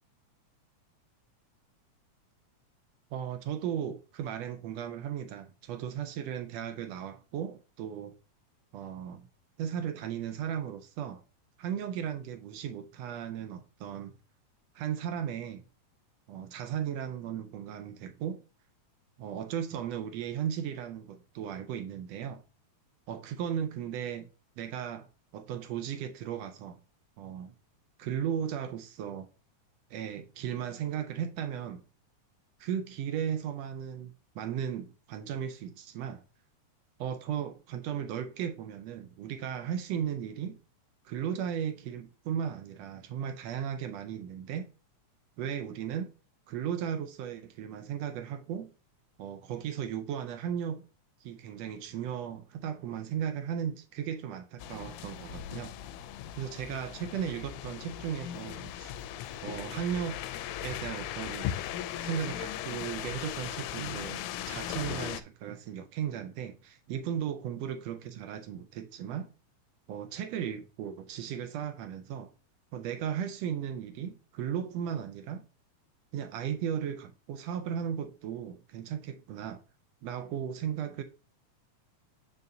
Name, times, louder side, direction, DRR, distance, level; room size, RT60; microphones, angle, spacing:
voice 1, 3.1-8.1 8.7-9.3 9.6-11.2 11.6-14.1 14.7-15.6 16.3-18.4 19.2-22.4 23.1-24.3 24.6-25.1 25.3-26.8 27.2-27.5 28.0-29.3 29.9-31.8 32.6-36.2 37.0-40.6 41.0-44.7 45.4-46.1 46.5-48.7 49.2-50.8 51.2-55.7 56.4-58.9 59.4-60.2 60.6-61.5 62.0-69.3 69.9-72.3 72.7-75.4 76.1-79.6 80.0-81.0, right 9 dB, 80° right, 1.5 m, -36 dB
sound 1, 54.6-65.2, left 11 dB, 80° left, 1.8 m, -38 dB
7.7 x 5.3 x 2.7 m
omnidirectional pair, 3.5 m